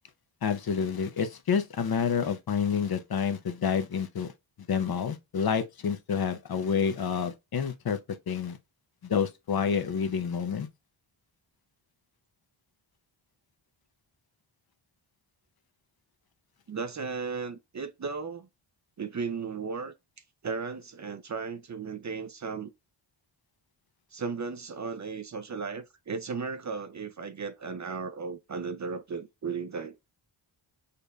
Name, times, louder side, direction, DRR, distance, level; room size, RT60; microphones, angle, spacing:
voice 1, 0.4-4.3 4.7-8.0 8.3-8.6 9.0-10.7, left 6 dB, 50° left, 0.7 m, -28 dB
voice 2, 16.7-18.5 19.0-19.9 20.4-22.7 24.1-30.0, right 5 dB, 40° right, 0.5 m, -35 dB
6.6 x 2.6 x 2.2 m
wide cardioid pair, 90°, 48 cm